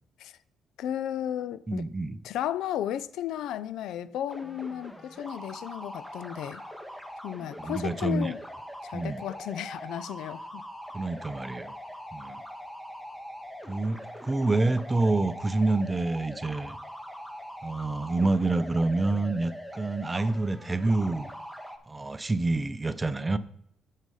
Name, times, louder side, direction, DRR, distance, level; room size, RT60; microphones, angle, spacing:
voice 1, 0.8-1.8 2.2-6.6 7.2-8.4 8.8-10.7, left 11 dB, 85° left, 0.3 m, -34 dB
voice 2, 1.7-2.2 7.6-8.3 8.9-9.2 10.9-11.7 12.1-12.4 13.7-16.8 17.6-21.3 21.9-23.4, right 2 dB, 20° right, 0.5 m, -27 dB
sound 1, 4.3-21.8, equal, 5° left, 0.9 m, -42 dB
6.6 x 6.1 x 5.5 m
cardioid pair, 90°, 0 cm